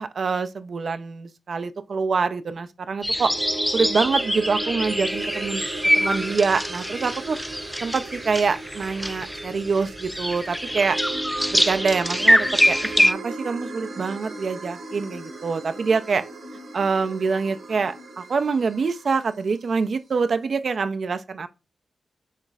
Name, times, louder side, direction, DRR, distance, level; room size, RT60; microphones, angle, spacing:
voice 1, 0.0-3.3 3.7-5.6 6.0-7.4 7.8-11.0 11.5-16.2 16.7-21.5, right 5 dB, 65° right, 0.4 m, -25 dB
sound 1, 3.0-13.1, equal, 5° left, 0.3 m, -24 dB
sound 2, 3.1-19.5, right 2 dB, 90° right, 1.6 m, -36 dB
6.5 x 3.0 x 2.3 m
cardioid pair, 60°, 0 cm